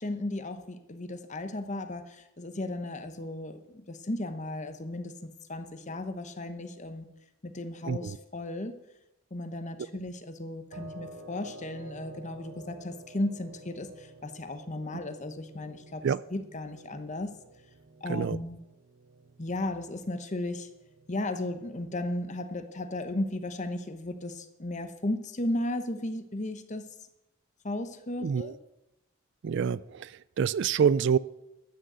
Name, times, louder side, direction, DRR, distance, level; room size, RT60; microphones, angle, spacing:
voice 1, 0.0-5.1 5.5-7.1 7.4-8.8 9.3-16.0 16.3-17.3 18.0-18.6 19.4-20.7 21.1-26.9 27.6-28.5, left 1 dB, 35° left, 9 dB, 1.0 m, -35 dB
voice 2, 7.8-8.2 16.0-16.2 18.1-18.4 28.2-28.5 29.4-31.2, right 7 dB, 60° right, 19 dB, 0.3 m, -27 dB
sound 1, 10.7-23.7, right 3 dB, 90° right, 1.2 m, -51 dB
12.5 x 6.5 x 8.0 m, 0.93 s
head